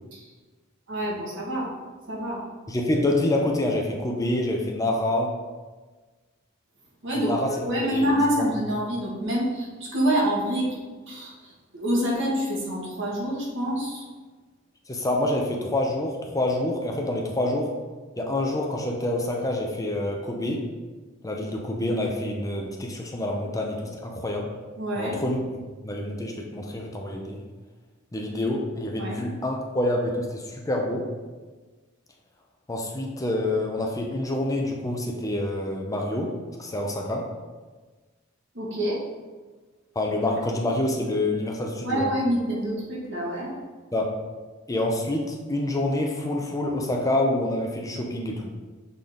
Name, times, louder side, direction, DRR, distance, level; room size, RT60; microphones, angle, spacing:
voice 1, 0.9-1.7 2.1-2.4 7.0-7.3 7.6-10.7 11.1-11.3 11.7-14.0 24.8-25.1 29.0-29.2 38.5-39.0 41.8-43.5, equal, 65° right, -4 dB, 1.8 m, -26 dB
voice 2, 2.7-5.3 7.2-7.6 7.8-8.1 8.4-8.5 14.9-17.7 18.2-20.6 21.2-24.5 25.0-27.4 28.1-31.1 32.7-36.3 36.6-37.2 40.0-42.1 43.9-44.1 44.7-48.5, left 1 dB, 15° left, 1 dB, 0.6 m, -27 dB
7.0 x 4.1 x 3.7 m, 1.3 s
head